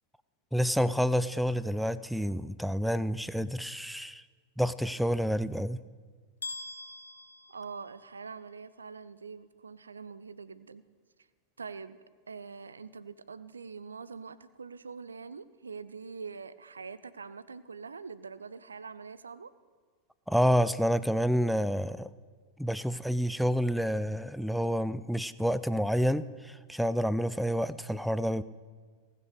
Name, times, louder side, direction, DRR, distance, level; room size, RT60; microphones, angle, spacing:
voice 1, 0.5-4.2 4.6-5.8 20.3-22.1 22.6-28.4, equal, ahead, 15 dB, 0.4 m, -28 dB
sound 1, 6.4-8.4, left 2 dB, 75° left, 1.1 m, -43 dB
voice 2, 7.5-10.8 11.6-19.5, right 5 dB, 75° right, 16 dB, 0.6 m, -44 dB
18.5 x 6.8 x 6.6 m, 1.5 s
figure-of-eight pair, 90°, 0 cm